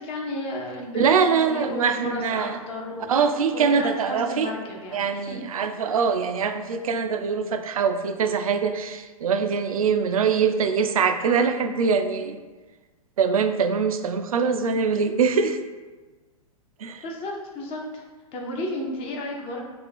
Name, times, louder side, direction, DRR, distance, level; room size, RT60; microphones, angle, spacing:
voice 1, 0.0-1.1 1.4-3.3 3.5-5.4 17.0-18.0 18.3-19.6, left 1 dB, 30° left, 0 dB, 0.7 m, -33 dB
voice 2, 0.9-2.6 3.1-4.5 4.9-12.4 13.2-15.6 16.8-17.0, right 6 dB, 70° right, 8 dB, 0.4 m, -23 dB
3.4 x 2.8 x 3.5 m, 1.3 s
figure-of-eight pair, 105°, 19 cm